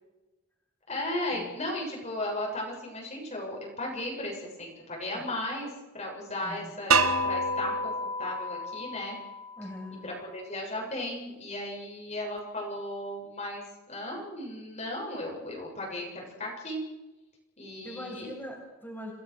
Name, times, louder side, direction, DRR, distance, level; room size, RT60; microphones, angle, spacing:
voice 1, 0.9-7.9 8.2-9.2 10.0-16.8 17.6-18.3, left 1 dB, 30° left, -1 dB, 7.5 m, -36 dB
sound 1, 6.9-9.8, right 2 dB, 80° right, 2.1 m, -28 dB
voice 2, 9.6-10.0 17.8-19.1, equal, 10° left, -1 dB, 7.5 m, -41 dB
29.0 x 20.5 x 6.5 m, 1.1 s
head